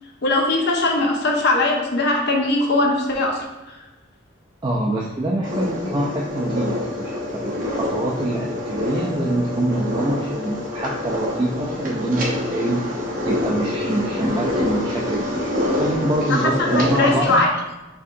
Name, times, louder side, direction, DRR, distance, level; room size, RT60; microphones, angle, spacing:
voice 1, 0.2-3.5 16.3-17.5, left 2 dB, 55° left, 0 dB, 0.7 m, -20 dB
voice 2, 4.6-12.9 13.2-17.4, right 1 dB, 20° right, -3 dB, 0.4 m, -25 dB
sound 1, 5.4-17.4, left 1 dB, 40° right, 1.1 m, -26 dB
4.6 x 3.6 x 2.6 m, 1.1 s
head